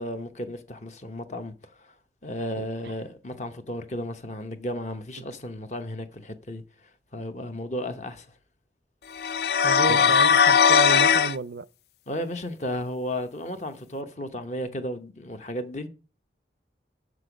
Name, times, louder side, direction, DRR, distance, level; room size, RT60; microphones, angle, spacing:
voice 1, 0.0-1.9 2.2-6.6 7.1-8.3 9.9-10.1 12.1-15.9, left 1 dB, 40° left, 0.9 m, -34 dB
voice 2, 2.6-2.9 9.6-11.6, right 5 dB, 75° right, 0.4 m, -32 dB
sound 1, 9.2-11.3, left 7 dB, 65° left, 0.4 m, -19 dB
7.1 x 6.4 x 5.0 m
head